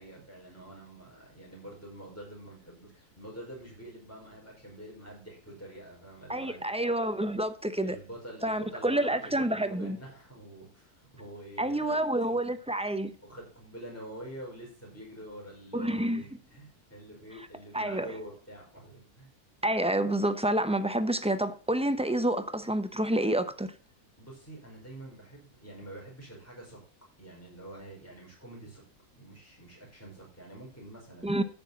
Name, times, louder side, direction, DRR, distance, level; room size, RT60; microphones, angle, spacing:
voice 1, 0.0-6.6 7.8-12.0 12.3-12.5 13.2-19.3 24.2-26.8 27.2-28.8 29.2-31.4, right 1 dB, 10° left, 5.2 m, -46 dB
voice 2, 6.3-8.0 8.4-10.0 11.6-13.1 15.7-16.2 17.7-18.1 19.6-23.7 31.2-31.4, right 1 dB, 5° right, 0.5 m, -28 dB
10.0 x 8.9 x 4.1 m
omnidirectional pair, 1.6 m